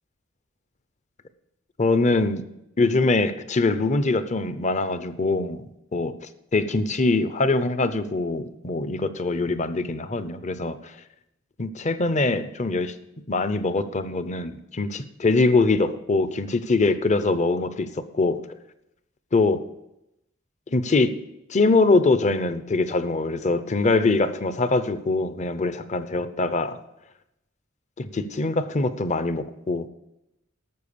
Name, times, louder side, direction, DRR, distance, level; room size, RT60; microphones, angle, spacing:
voice 1, 1.8-2.4 2.8-5.6 5.9-10.9 11.6-12.9 13.3-17.9 18.1-18.4 19.3-19.6 20.7-21.1 21.5-26.8 28.0-29.9, left 3 dB, 35° left, 12 dB, 0.7 m, -23 dB
12.5 x 7.2 x 6.8 m, 0.86 s
head